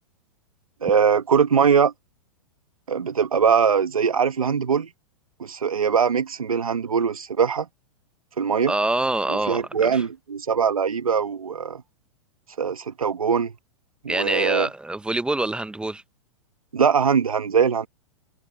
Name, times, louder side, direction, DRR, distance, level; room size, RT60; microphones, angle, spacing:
voice 1, 0.8-1.9 2.9-4.9 5.4-7.7 8.4-8.7 9.3-11.8 12.6-13.5 14.0-14.7 16.7-17.9, right 6 dB, 90° right, 1.6 m, -21 dB
voice 2, 8.7-10.0 14.1-16.0, right 2 dB, 5° right, 0.7 m, -25 dB
hypercardioid pair, 110°, 18 cm